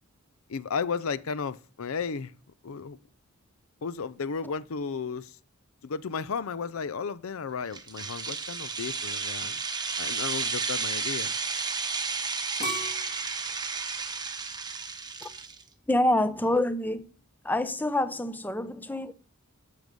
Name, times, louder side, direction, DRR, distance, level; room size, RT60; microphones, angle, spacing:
voice 1, 0.5-2.4 2.6-3.0 3.8-5.4 5.8-9.6 10.0-11.3, left 5 dB, 70° left, 0.5 m, -34 dB
sound 1, 7.7-15.6, right 5 dB, 20° right, 1.0 m, -32 dB
sound 2, 12.6-15.5 16.0-16.5, right 1 dB, 35° left, 2.5 m, -39 dB
voice 2, 15.9-17.0 17.4-19.1, left 1 dB, 10° left, 0.6 m, -26 dB
12.5 x 6.9 x 5.1 m
head